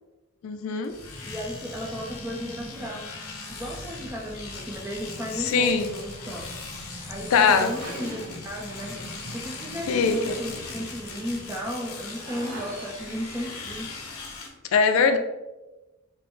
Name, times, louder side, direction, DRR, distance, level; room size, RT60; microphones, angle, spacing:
voice 1, 0.4-0.9 5.4-5.9 7.3-7.7 9.9-10.4 14.7-15.2, left 5 dB, 70° left, 8 dB, 0.3 m, -21 dB
Domestic sounds home sounds, 0.8-14.5, left 4 dB, 90° left, 0.7 m, -41 dB
sound 1, 0.9-14.4, equal, 30° left, 0.8 m, -45 dB
voice 2, 1.2-3.1 3.5-6.5 7.1-9.0 9.3-13.9, equal, 10° right, -2 dB, 0.5 m, -34 dB
sound 2, 6.1-13.9, equal, 70° right, 0.9 m, -43 dB
4.4 x 2.0 x 3.1 m, 1.1 s
head